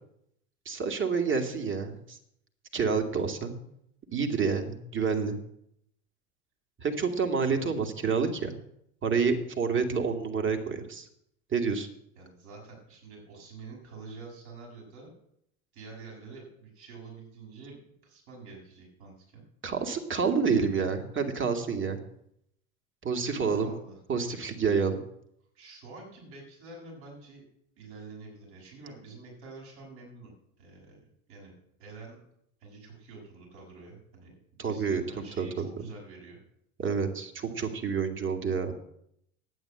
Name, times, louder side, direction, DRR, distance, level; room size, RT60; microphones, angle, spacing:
voice 1, 0.7-2.2 2.7-3.5 4.1-5.4 6.8-8.6 9.0-11.1 11.5-11.9 19.6-22.0 23.0-23.7 24.1-25.0 34.6-35.0 35.4-35.7 36.8-38.7, right 5 dB, 25° right, 5 dB, 2.2 m, -28 dB
voice 2, 12.1-15.1 15.7-19.4 23.1-24.0 25.5-27.4 27.8-31.0 31.3-31.5 31.8-32.2 32.6-34.3 34.6-36.4, right 3 dB, 60° right, -1 dB, 6.7 m, -47 dB
10.5 x 9.1 x 7.9 m, 0.75 s
hypercardioid pair, 85°, 43 cm